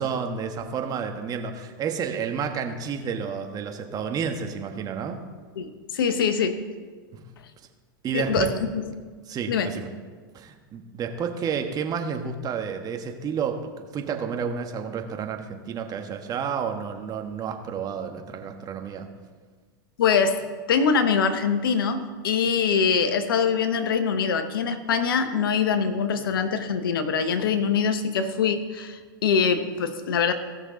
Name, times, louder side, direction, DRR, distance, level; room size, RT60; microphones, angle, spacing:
voice 1, 0.0-5.2 7.1-7.2 8.0-8.5 9.3-9.9 10.3-19.1, right 6 dB, 35° right, 5 dB, 1.3 m, -30 dB
voice 2, 5.6-6.6 8.1-8.5 9.5-9.8 20.0-30.3, left 6 dB, 80° left, 9 dB, 1.0 m, -23 dB
17.0 x 6.4 x 3.8 m, 1.5 s
hypercardioid pair, 100°, 12 cm